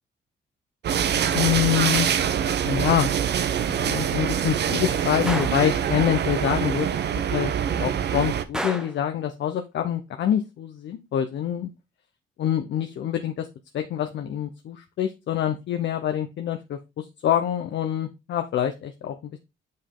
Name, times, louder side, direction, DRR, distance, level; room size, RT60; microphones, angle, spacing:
sound 1, 0.8-8.4, right 8 dB, 60° right, 0.8 m, -24 dB
voice 1, 1.3-2.1 2.6-3.1 3.7-7.5 7.8-11.7 12.4-13.5 13.7-19.4, left 10 dB, 65° left, 7 dB, 0.8 m, -26 dB
Gunshot gunfire, 5.3-5.7 8.5-9.0, right 1 dB, 5° right, 0.9 m, -30 dB
6.4 x 5.3 x 3.8 m, 0.25 s
cardioid pair, 90°, 20 cm